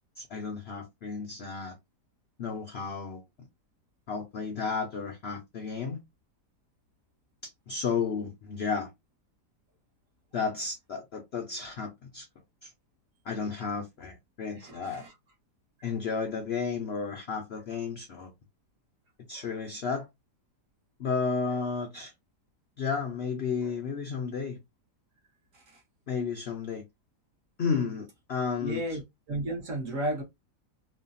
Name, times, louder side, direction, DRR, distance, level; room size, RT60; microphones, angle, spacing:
voice 1, 0.2-1.8 2.4-3.2 4.1-6.0 7.4-8.9 10.3-12.3 12.6-12.7 13.2-15.0 15.8-18.3 19.3-20.1 21.0-22.1 22.8-24.6 26.1-26.8 27.6-29.0, left 5 dB, 65° left, 0.6 m, -33 dB
voice 2, 14.6-15.1 28.6-29.0 29.3-30.2, right 1 dB, 55° right, 1.3 m, -32 dB
3.2 x 2.2 x 2.5 m
omnidirectional pair, 1.8 m